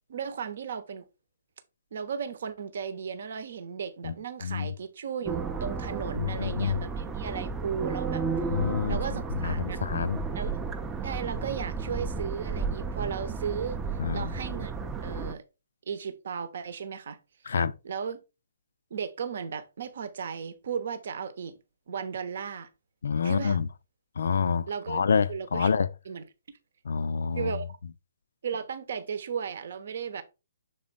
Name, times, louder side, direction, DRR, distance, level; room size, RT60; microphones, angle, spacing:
voice 1, 0.1-1.0 1.9-8.3 8.9-9.8 10.3-10.6 11.0-15.4 15.9-17.2 17.8-18.2 18.9-21.6 21.9-22.7 23.2-23.6 24.7-25.0 25.3-25.7 26.1-26.2 27.3-27.7 28.4-30.2, right 7 dB, 50° right, 0.9 m, -35 dB
sound 1, 5.3-15.3, right 5 dB, 10° right, 0.6 m, -33 dB
voice 2, 6.2-6.8 8.5-9.0 9.4-10.2 14.0-14.3 17.5-17.7 23.0-23.7 24.2-25.9 26.8-27.6, left 6 dB, 55° left, 0.4 m, -27 dB
6.8 x 4.0 x 3.7 m
figure-of-eight pair, 130°, 0 cm